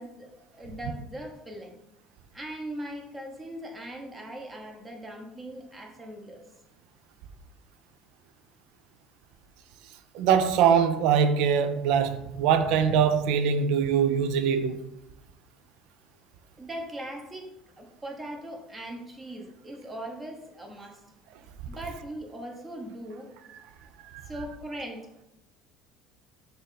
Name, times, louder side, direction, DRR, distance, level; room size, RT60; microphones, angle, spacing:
voice 1, 0.0-1.8 2.3-6.4 16.6-21.0 21.7-23.3 24.2-25.1, right 1 dB, 20° right, 0.9 m, -40 dB
voice 2, 10.1-14.8 24.1-24.2, right 7 dB, 65° right, 0.4 m, -23 dB
4.0 x 2.6 x 3.9 m
hypercardioid pair, 70°, 0 cm